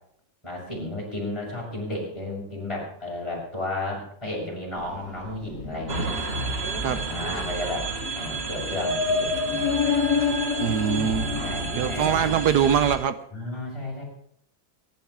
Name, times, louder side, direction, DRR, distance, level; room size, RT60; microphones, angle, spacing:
voice 1, 0.4-6.1 6.8-7.9 8.1-9.7 11.2-12.4 13.3-14.0, left 1 dB, 15° left, -4 dB, 6.6 m, -33 dB
sound 1, 4.8-12.9, left 5 dB, 55° left, 2.4 m, -30 dB
sound 2, 5.9-13.0, right 3 dB, 35° right, 1.6 m, -31 dB
voice 2, 10.6-11.3 11.7-13.1, right 9 dB, 65° right, 11 dB, 1.1 m, -22 dB
24.0 x 11.5 x 3.7 m, 0.70 s
omnidirectional pair, 2.2 m